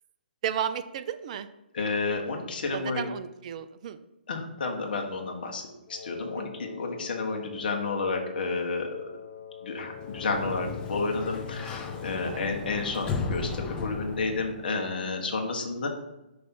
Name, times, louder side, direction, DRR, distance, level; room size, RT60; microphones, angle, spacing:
voice 1, 0.4-1.5 2.7-4.0 6.4-6.5 12.2-12.4, right 9 dB, 45° right, 11 dB, 0.4 m, -33 dB
voice 2, 1.7-3.0 4.3-5.6 5.9-8.9 9.6-15.9, left 3 dB, 60° left, 2 dB, 1.3 m, -31 dB
Wind instrument woodwind instrument, 5.9-12.6, left 8 dB, 40° left, 1.6 m, -44 dB
Sliding door, 9.9-14.7, left 4 dB, 15° left, 0.6 m, -35 dB
5.9 x 3.1 x 5.6 m, 0.93 s
hypercardioid pair, 140°, 6 cm